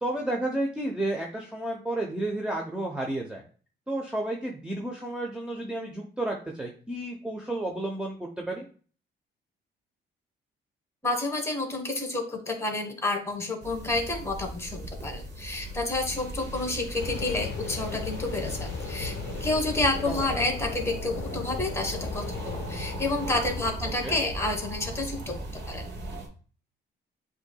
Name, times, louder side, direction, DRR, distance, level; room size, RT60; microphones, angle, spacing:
voice 1, 0.0-3.4 3.9-8.7 20.1-20.2 24.0-24.2, right 1 dB, 5° right, 0 dB, 0.8 m, -31 dB
voice 2, 11.0-19.1 19.4-25.8, left 2 dB, 15° left, 4 dB, 1.4 m, -30 dB
sound 1, 13.6-26.3, right 1 dB, 60° right, 1.3 m, -37 dB
sound 2, 17.0-23.7, left 8 dB, 75° left, 0.5 m, -38 dB
7.8 x 2.8 x 2.3 m, 0.41 s
cardioid pair, 90°, 20 cm